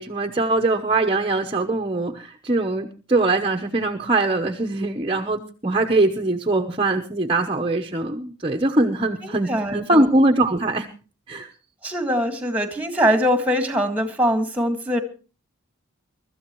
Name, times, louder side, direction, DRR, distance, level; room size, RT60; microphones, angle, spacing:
voice 1, 0.0-10.9 11.3-11.5, right 2 dB, 25° right, 5 dB, 0.9 m, -22 dB
voice 2, 9.2-10.1 11.8-15.0, equal, 5° right, 7 dB, 1.8 m, -22 dB
23.5 x 13.5 x 3.1 m, 0.36 s
head